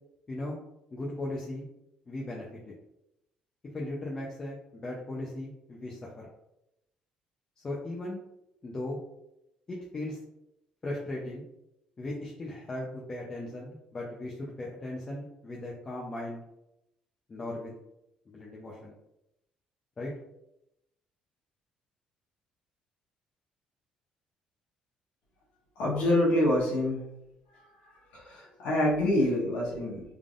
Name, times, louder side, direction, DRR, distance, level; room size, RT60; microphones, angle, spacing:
voice 1, 0.9-1.7 2.1-2.7 3.7-6.3 7.6-8.2 8.6-9.0 9.7-10.2 10.8-11.4 12.0-16.4 17.3-17.7 18.3-18.9 20.0-20.1, left 1 dB, 25° left, -3 dB, 0.6 m, -37 dB
voice 2, 25.8-27.0 28.1-30.0, left 1 dB, 85° left, -5 dB, 1.3 m, -26 dB
3.7 x 3.4 x 2.5 m, 0.86 s
cardioid pair, 135°, 2 cm